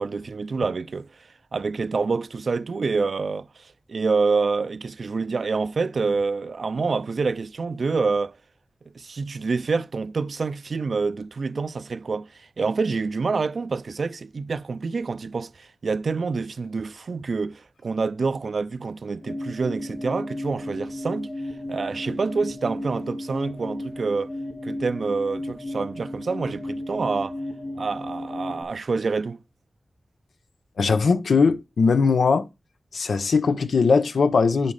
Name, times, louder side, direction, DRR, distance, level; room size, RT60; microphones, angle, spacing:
voice 1, 0.0-8.4 8.9-21.3 21.7-24.3 24.6-27.4 27.8-29.4, right 4 dB, 70° right, 0.5 m, -27 dB
sound 1, 19.2-28.6, left 1 dB, 40° left, 2.4 m, -34 dB
voice 2, 30.8-32.5 32.9-34.7, left 4 dB, 85° left, 1.0 m, -20 dB
11.0 x 4.2 x 5.0 m
cardioid pair, 60°, 0 cm